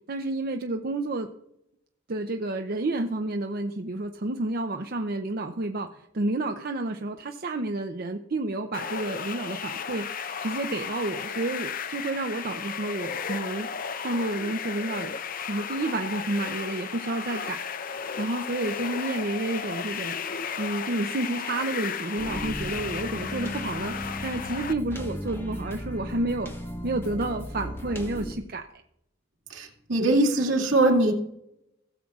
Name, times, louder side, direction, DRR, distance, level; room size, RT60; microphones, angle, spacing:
voice 1, 0.1-1.3 2.1-10.0 10.4-13.7 14.0-20.2 20.6-23.9 24.2-26.5 26.8-28.6, right 2 dB, 50° right, 5 dB, 0.6 m, -30 dB
sound 1, 8.7-24.7, left 6 dB, 45° left, 0.5 m, -34 dB
sound 2, 22.2-28.3, equal, 10° left, 1.2 m, -36 dB
voice 2, 29.5-31.1, right 2 dB, 75° right, 0 dB, 2.3 m, -22 dB
17.0 x 7.6 x 2.4 m, 0.79 s
head